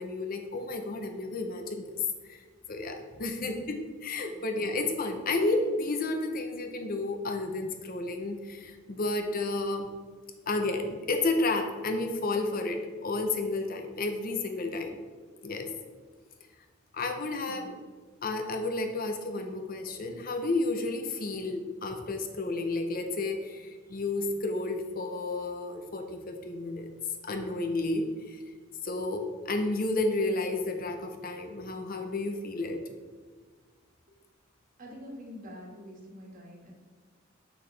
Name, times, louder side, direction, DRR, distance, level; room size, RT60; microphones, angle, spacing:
voice 1, 0.0-2.4 2.7-9.9 10.5-15.0 15.4-15.7 16.9-17.8 18.2-26.9 27.2-28.4 28.8-32.8, left 2 dB, 45° left, 5 dB, 0.7 m, -31 dB
voice 2, 3.1-3.5 4.3-4.4 17.4-17.8 34.8-36.7, equal, 45° right, -1 dB, 1.5 m, -46 dB
6.8 x 5.8 x 3.3 m, 1.5 s
head